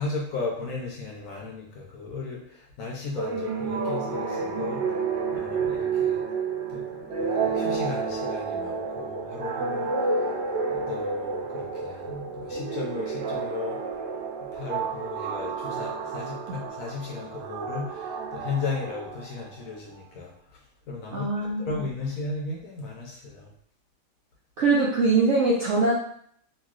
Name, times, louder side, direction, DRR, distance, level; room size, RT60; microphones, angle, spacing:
voice 1, 0.0-5.1 5.3-6.2 6.7-9.9 10.6-13.8 14.5-20.3 20.9-21.3 21.6-23.5, left 3 dB, 65° left, -1 dB, 0.9 m, -35 dB
sound 1, 3.2-19.5, right 4 dB, 90° right, 1.2 m, -30 dB
voice 2, 21.1-21.8 24.6-25.9, right 3 dB, 70° right, -5 dB, 0.7 m, -22 dB
3.0 x 2.7 x 2.4 m, 0.63 s
omnidirectional pair, 1.8 m